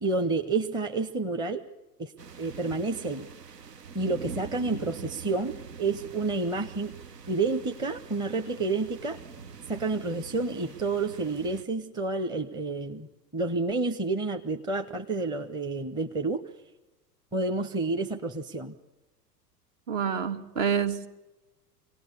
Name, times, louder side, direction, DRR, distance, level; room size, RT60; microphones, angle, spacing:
voice 1, 0.0-1.6 2.0-2.1 2.4-3.3 3.9-6.9 7.3-9.2 9.7-13.1 13.3-16.4 17.3-18.7, right 3 dB, 10° right, 6 dB, 0.8 m, -29 dB
sound 1, 2.2-11.6, right 5 dB, 75° right, 1.0 m, -44 dB
voice 2, 19.9-21.1, right 7 dB, 50° right, 9 dB, 1.9 m, -27 dB
25.0 x 18.0 x 8.3 m, 1.0 s
figure-of-eight pair, 90°, 48 cm